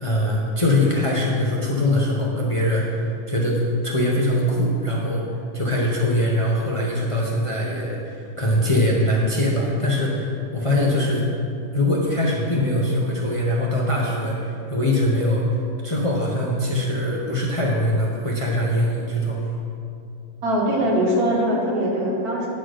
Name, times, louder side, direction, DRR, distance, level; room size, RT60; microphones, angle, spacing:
voice 1, 0.0-5.2 5.5-11.2 11.7-15.4 15.8-19.4, left 1 dB, 30° left, -3 dB, 0.7 m, -22 dB
voice 2, 20.4-22.5, equal, 75° right, -3 dB, 2.0 m, -21 dB
9.5 x 4.2 x 6.3 m, 2.6 s
omnidirectional pair, 1.6 m